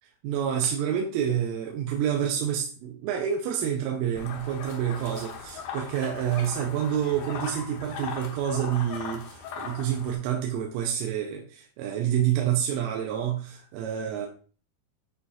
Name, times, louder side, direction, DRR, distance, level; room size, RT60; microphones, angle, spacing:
voice 1, 0.2-14.3, right 9 dB, 90° right, 1 dB, 3.3 m, -28 dB
sound 1, 4.2-10.2, left 6 dB, 85° left, 2.0 m, -39 dB
9.2 x 4.2 x 2.4 m, 0.39 s
omnidirectional pair, 5.7 m